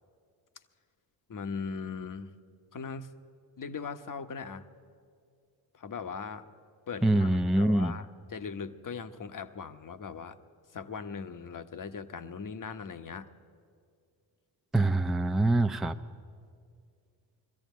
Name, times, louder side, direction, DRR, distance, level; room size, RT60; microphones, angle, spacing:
voice 1, 1.3-2.3 2.7-3.1 3.6-4.7 5.7-6.5 6.9-10.4 10.7-13.3, left 5 dB, 40° left, 10 dB, 1.2 m, -39 dB
voice 2, 7.0-7.9 14.7-15.9, right 2 dB, ahead, 5 dB, 0.6 m, -24 dB
20.5 x 14.0 x 9.3 m, 2.2 s
supercardioid pair, 60°, 48 cm